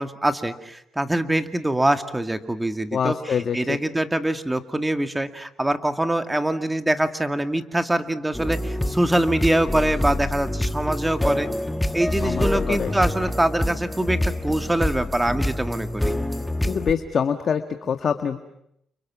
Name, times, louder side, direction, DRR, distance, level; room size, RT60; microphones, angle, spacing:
voice 1, 0.0-11.5 11.9-16.1, right 1 dB, 10° right, 7 dB, 2.2 m, -24 dB
voice 2, 2.9-3.8 12.2-12.9 16.7-18.4, left 7 dB, 50° left, 7 dB, 1.6 m, -25 dB
sound 1, 8.3-16.9, left 1 dB, 10° left, 1.6 m, -26 dB
30.0 x 29.5 x 6.3 m, 0.75 s
cardioid pair, 90°, 0 cm